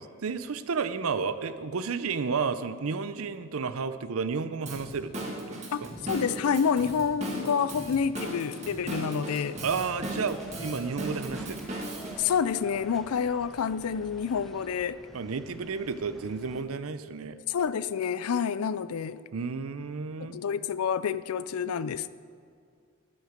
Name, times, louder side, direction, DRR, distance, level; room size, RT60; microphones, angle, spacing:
voice 1, 0.0-5.9 9.6-11.7 15.1-17.4 19.3-20.3, right 5 dB, 75° right, 0.6 m, -32 dB
Drum kit / Drum, 4.7-12.2, right 1 dB, 30° right, 1.8 m, -37 dB
voice 2, 5.7-9.6 12.2-15.0 17.5-19.2 20.2-22.1, left 6 dB, 85° left, 0.4 m, -28 dB
sound 1, 9.6-16.6, equal, ahead, 0.7 m, -48 dB
12.5 x 9.5 x 5.1 m
head